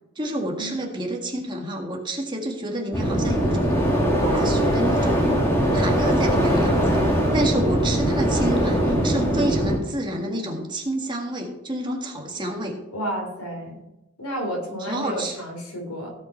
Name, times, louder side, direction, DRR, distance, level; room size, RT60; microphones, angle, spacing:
voice 1, 0.2-3.7 4.2-5.3 5.7-12.8 14.8-15.4, right 1 dB, 20° right, 0 dB, 1.8 m, -29 dB
sound 1, 2.9-9.8, equal, 10° left, 2.0 m, -21 dB
voice 2, 6.8-7.2 12.9-13.8 14.2-16.1, equal, 85° left, 1 dB, 3.6 m, -31 dB
16.5 x 5.8 x 4.4 m, 0.94 s
head